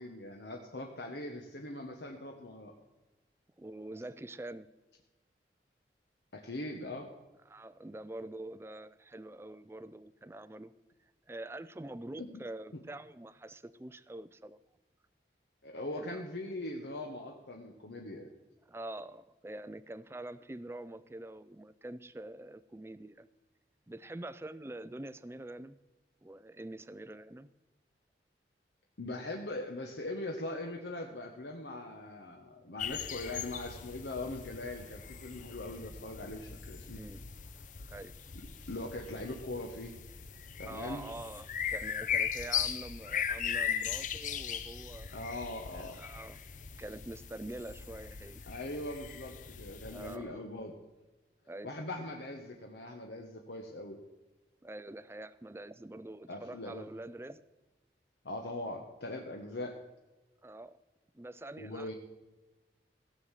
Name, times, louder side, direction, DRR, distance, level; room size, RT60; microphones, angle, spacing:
voice 1, 0.0-2.7 6.3-7.1 12.2-12.3 15.6-18.3 29.0-37.0 38.6-39.9 40.6-41.0 45.1-46.0 48.5-50.7 51.6-54.0 56.3-56.9 58.2-59.7 61.6-61.9, left 2 dB, 75° left, 2 dB, 1.1 m, -41 dB
voice 2, 3.6-4.7 7.5-10.7 11.3-14.6 15.9-16.2 18.7-23.3 23.9-25.8 26.2-27.5 36.9-37.2 37.6-38.1 40.6-45.2 45.8-46.4 46.8-48.4 49.9-50.4 51.5-51.7 54.6-57.4 60.4-60.8 61.1-61.9, right 1 dB, 15° right, 16 dB, 0.4 m, -45 dB
sound 1, 32.8-50.2, left 8 dB, 45° left, 0.7 m, -39 dB
16.5 x 6.5 x 7.4 m, 1.1 s
head